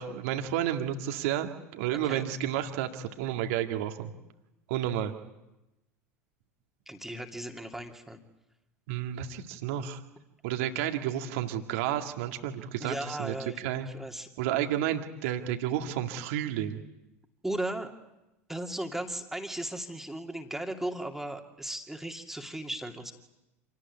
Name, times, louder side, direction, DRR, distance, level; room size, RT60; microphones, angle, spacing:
voice 1, 0.0-4.1 4.7-5.1 8.9-10.0 10.4-13.9 14.4-16.8, right 11 dB, 60° right, 5 dB, 2.0 m, -31 dB
voice 2, 1.9-2.2 6.9-8.2 12.8-14.3 17.4-17.9 18.5-23.1, right 1 dB, 5° right, 3 dB, 2.6 m, -36 dB
27.0 x 19.0 x 9.8 m, 0.95 s
figure-of-eight pair, 75°, 8 cm